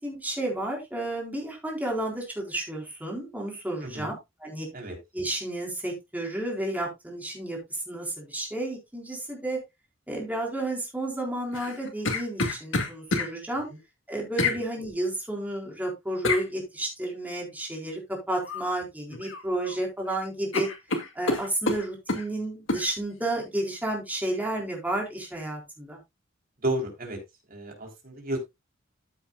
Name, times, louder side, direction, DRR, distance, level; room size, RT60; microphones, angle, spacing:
voice 1, 0.0-4.1 4.4-4.7 5.1-7.6 7.9-9.6 10.1-13.7 14.1-18.0 18.3-20.7 21.1-26.0, right 1 dB, 10° right, 0 dB, 4.1 m, -31 dB
voice 2, 3.8-4.1 4.7-5.0 14.5-14.6 26.6-27.2 27.5-28.4, right 1 dB, 50° right, 2 dB, 3.6 m, -32 dB
sound 1, 11.5-13.3 14.4-14.6 16.2-16.5 18.4-18.7 19.1-19.8 20.1-20.2 20.5-22.3 22.7-22.9, left 3 dB, 75° left, 2.1 m, -28 dB
14.0 x 7.9 x 2.3 m, 0.21 s
head